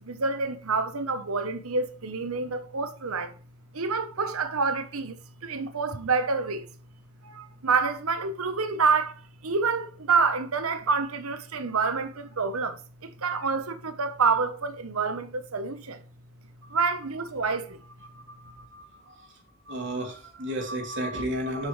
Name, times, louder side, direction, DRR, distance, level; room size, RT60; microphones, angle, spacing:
voice 1, 0.0-3.3 3.7-5.2 5.4-6.7 7.2-16.0 16.7-17.8, right 4 dB, 80° right, 1.0 m, -27 dB
voice 2, 18.0-19.3 19.7-21.7, right 1 dB, 60° right, 3.1 m, -33 dB
10.0 x 8.3 x 3.3 m
head